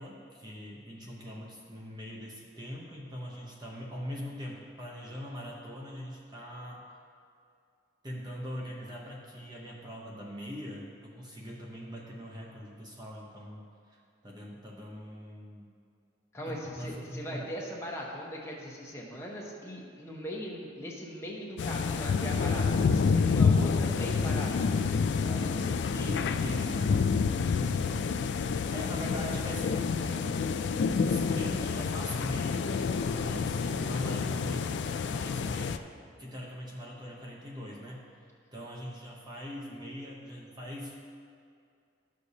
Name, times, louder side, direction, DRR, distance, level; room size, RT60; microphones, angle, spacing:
voice 1, 0.0-6.9 8.0-14.0 14.2-15.7 16.5-17.5 25.9-27.4 28.7-30.5 30.9-32.7 33.2-35.9 36.2-38.1 38.5-41.0, equal, 20° right, -3 dB, 0.8 m, -42 dB
voice 2, 16.3-24.9 25.2-25.7 27.3-28.4, equal, 15° left, -3 dB, 1.0 m, -40 dB
sound 1, 21.6-35.8, left 5 dB, 65° left, 0.3 m, -28 dB
12.5 x 6.5 x 2.7 m, 2.3 s
head